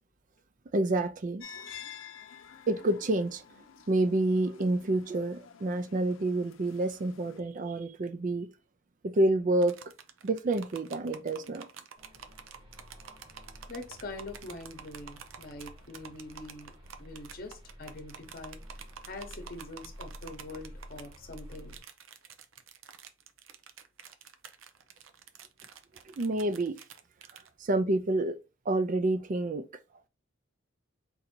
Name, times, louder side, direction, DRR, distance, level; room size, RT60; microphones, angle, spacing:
voice 1, 0.7-1.5 2.7-3.4 3.9-8.5 9.0-9.8 10.2-11.7 26.1-26.7 27.6-28.4 28.7-29.7, right 2 dB, 40° right, 0.4 m, -28 dB
sound 1, 1.4-7.4, left 8 dB, 80° left, 0.5 m, -50 dB
sound 2, 9.6-27.5, right 7 dB, 85° right, 0.6 m, -49 dB
sound 3, 12.0-21.8, equal, 25° right, 1.0 m, -50 dB
voice 2, 13.7-16.7 17.0-18.6 19.1-21.7, left 2 dB, 50° left, 0.9 m, -44 dB
4.0 x 2.7 x 4.3 m
head